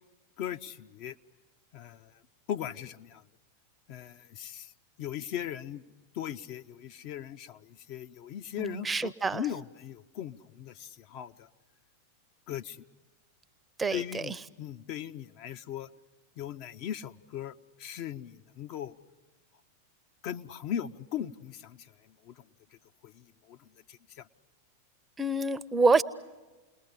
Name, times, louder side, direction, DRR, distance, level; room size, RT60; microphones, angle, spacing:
voice 1, 0.4-1.2 1.7-2.2 2.5-3.2 3.9-4.7 5.0-5.8 6.1-11.5 12.5-12.8 13.9-15.9 16.4-18.9 20.2-21.9 22.2-22.4 23.0-24.3, left 10 dB, 45° left, 7 dB, 0.8 m, -39 dB
voice 2, 8.6-9.4 13.8-14.4 25.2-26.0, right 3 dB, 15° right, 14 dB, 0.7 m, -27 dB
29.5 x 20.5 x 8.2 m, 1.2 s
figure-of-eight pair, 90°, 0 cm